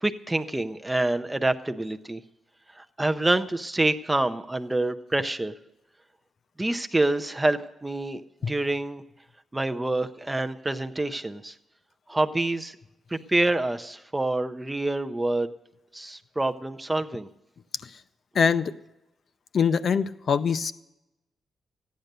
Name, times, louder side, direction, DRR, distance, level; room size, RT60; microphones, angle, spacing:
voice 1, 0.0-2.2 2.8-5.5 6.6-8.2 8.5-9.0 9.5-11.5 12.1-12.8 13.1-15.5 15.9-17.3, right 2 dB, 10° right, 8 dB, 0.5 m, -27 dB
voice 2, 18.3-18.7 19.5-20.7, left 6 dB, 45° left, 11 dB, 0.5 m, -23 dB
15.0 x 10.5 x 6.7 m, 0.90 s
wide cardioid pair, 165°, 0 cm